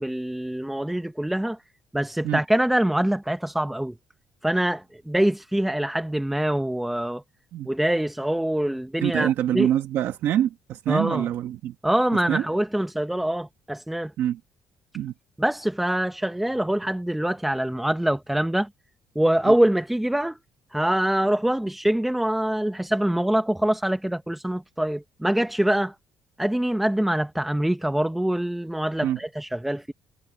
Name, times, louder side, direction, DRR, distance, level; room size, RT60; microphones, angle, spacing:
voice 1, 0.0-1.6 1.9-3.9 4.4-7.2 7.7-9.7 10.9-11.3 11.8-14.1 15.4-18.7 19.1-20.4 20.7-25.9 26.4-29.9, right 1 dB, 5° right, 0.8 m, -24 dB
voice 2, 9.0-11.7 12.3-12.5 14.2-14.4 14.9-15.1 19.5-19.6 29.0-29.2, right 11 dB, 60° right, 1.0 m, -25 dB
cardioid pair, 145°, 5 cm